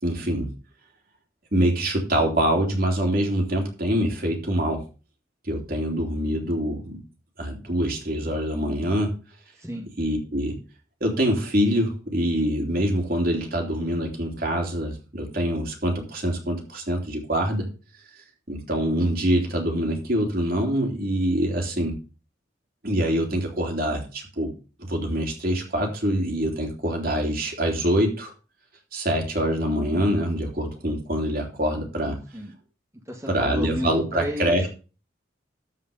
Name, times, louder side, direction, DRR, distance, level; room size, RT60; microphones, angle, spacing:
voice 1, 0.0-0.5 1.5-4.8 5.4-7.0 7.4-9.1 10.0-10.6 11.0-17.7 18.5-22.0 22.8-24.5 24.8-28.3 28.9-32.2 33.3-34.7, equal, 55° right, 1 dB, 3.2 m, -25 dB
voice 2, 33.1-34.7, equal, 15° right, 0 dB, 1.8 m, -32 dB
13.5 x 5.1 x 5.3 m, 0.34 s
head